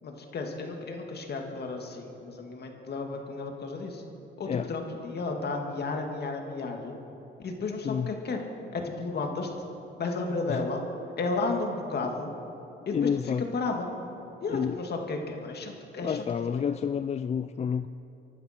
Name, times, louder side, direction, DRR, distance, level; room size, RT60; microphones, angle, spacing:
voice 1, 0.0-4.0 4.4-7.0 7.4-8.4 8.7-9.5 10.0-10.8 11.2-12.3 12.9-13.9 14.4-16.6, left 3 dB, 55° left, 3 dB, 2.2 m, -33 dB
voice 2, 12.9-13.4 14.5-14.7 16.0-17.9, left 7 dB, 35° left, 12 dB, 0.4 m, -29 dB
24.5 x 11.5 x 4.5 m, 2.9 s
cardioid pair, 90°, 20 cm